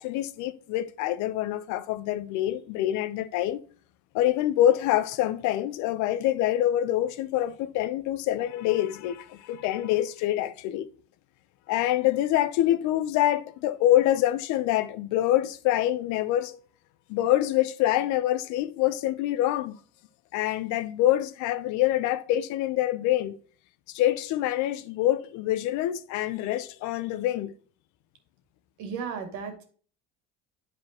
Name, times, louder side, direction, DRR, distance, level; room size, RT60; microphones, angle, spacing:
voice 1, 0.0-3.6 4.1-10.9 11.7-16.6 17.1-19.8 20.3-23.4 23.9-27.5, left 13 dB, 70° left, 0.7 m, -25 dB
voice 2, 28.8-29.6, right 6 dB, 70° right, 2.2 m, -34 dB
9.3 x 5.0 x 2.9 m
supercardioid pair, 95°, 31 cm